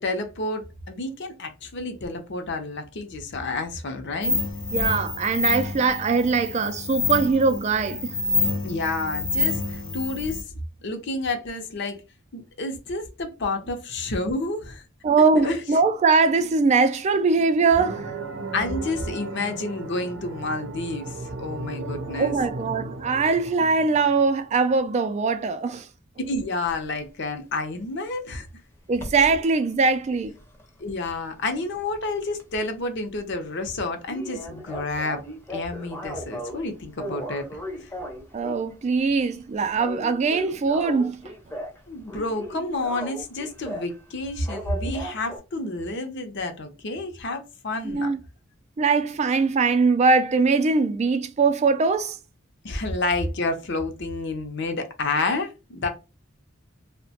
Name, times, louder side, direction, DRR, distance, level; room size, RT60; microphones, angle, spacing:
voice 1, 0.0-4.4 8.6-10.4 10.8-12.0 12.3-14.8 15.3-15.6 18.5-22.3 26.3-28.5 30.8-35.2 35.5-37.9 41.9-48.1 52.6-55.9, left 2 dB, 60° left, 0.6 m, -29 dB
sound 1, 4.2-10.4, left 4 dB, 80° left, 1.0 m, -27 dB
voice 2, 4.7-8.0 15.0-18.1 22.2-25.8 28.9-30.3 38.3-41.2 47.8-48.2 48.8-52.2, right 4 dB, 35° right, 0.3 m, -21 dB
sound 2, 17.7-24.5, right 3 dB, 85° right, 0.6 m, -36 dB
sound 3, 26.6-26.8 28.9-29.4 29.8-32.0 32.3-32.4 32.8-32.9 33.2-33.3 33.5-33.6 34.1-36.6 37.0-38.7 39.1-39.4 39.7-41.8 42.1-43.9 44.4-45.4, equal, 10° left, 0.6 m, -36 dB
2.9 x 2.1 x 2.8 m
head